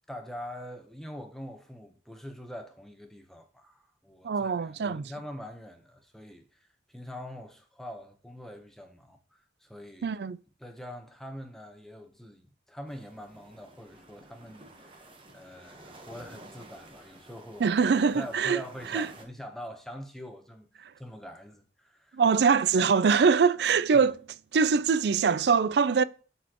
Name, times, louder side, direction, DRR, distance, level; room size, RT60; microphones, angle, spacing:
voice 1, 0.1-10.1 10.6-15.1 15.3-17.7 18.1-22.2 23.9-24.1, equal, ahead, 1.0 m, -44 dB
voice 2, 4.2-5.0 10.0-10.4 17.6-18.6 18.9-19.1 22.1-24.1 24.5-26.0, right 5 dB, 70° right, 0.4 m, -23 dB
sound 1, 12.9-19.3, right 1 dB, 30° right, 1.1 m, -51 dB
12.5 x 4.2 x 3.0 m
head